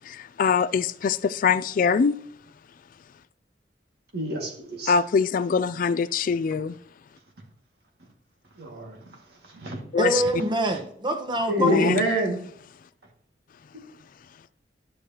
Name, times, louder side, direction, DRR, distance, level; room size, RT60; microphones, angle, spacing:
voice 1, 0.0-2.2 4.9-6.8 9.9-10.2 11.6-12.1, left 6 dB, 50° left, 0.3 m, -23 dB
voice 2, 4.1-4.9 8.6-9.0 9.5-9.8 11.5-12.4, right 1 dB, 65° right, 2.1 m, -26 dB
voice 3, 10.0-12.0, right 1 dB, 25° right, 1.2 m, -25 dB
12.0 x 6.5 x 2.9 m
head